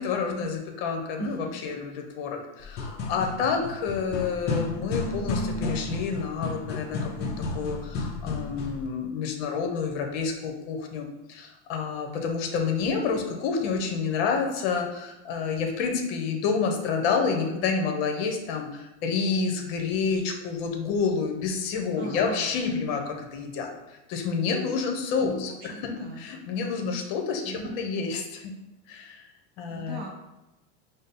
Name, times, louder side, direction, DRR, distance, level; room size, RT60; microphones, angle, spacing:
voice 1, 0.0-28.5 28.9-29.3 29.6-30.0, left 5 dB, 55° left, 3 dB, 0.8 m, -29 dB
voice 2, 1.2-1.6 22.0-22.5 25.2-26.2 27.5-27.9 29.7-30.1, right 3 dB, 30° right, 0 dB, 0.4 m, -38 dB
sound 1, 2.6-8.9, left 3 dB, 30° left, 0.5 m, -32 dB
5.1 x 2.0 x 4.0 m, 0.97 s
supercardioid pair, 150°, 37 cm